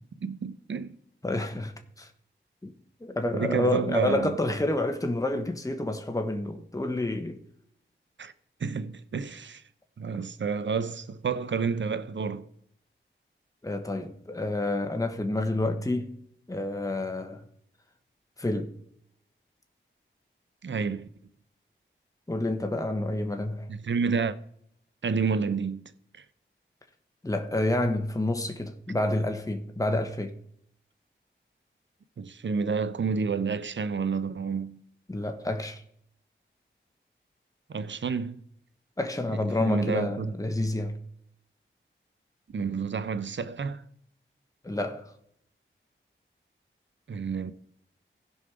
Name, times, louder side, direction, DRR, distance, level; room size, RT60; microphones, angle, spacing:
voice 1, 0.2-0.9 3.3-4.3 8.2-8.3 8.6-9.6 10.0-12.5 20.6-21.1 23.7-24.4 25.0-26.2 32.2-34.8 37.7-38.4 39.6-40.3 42.5-43.8 47.1-47.5, right 5 dB, 65° right, 0.7 m, -30 dB
voice 2, 1.2-2.1 2.6-2.7 3.0-7.4 13.6-16.2 16.5-17.4 18.4-18.7 22.3-23.7 27.2-30.3 35.1-35.8 39.0-41.0 44.6-45.1, left 2 dB, 15° left, 1.2 m, -29 dB
15.5 x 5.4 x 4.8 m
cardioid pair, 50°, 21 cm